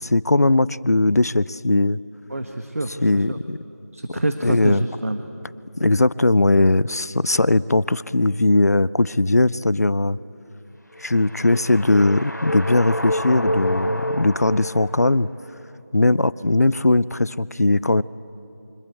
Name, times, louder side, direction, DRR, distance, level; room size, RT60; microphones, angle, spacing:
voice 1, 0.0-2.0 3.0-3.6 4.4-4.8 5.8-10.2 11.0-15.3 15.9-18.0, left 2 dB, 65° left, 20 dB, 0.6 m, -19 dB
voice 2, 2.3-3.4 3.9-5.2, right 1 dB, 55° right, 7 dB, 1.5 m, -27 dB
sound 1, 11.0-15.3, equal, 90° left, 2.7 m, -28 dB
26.5 x 25.0 x 8.4 m, 2.9 s
figure-of-eight pair, 170°, 9 cm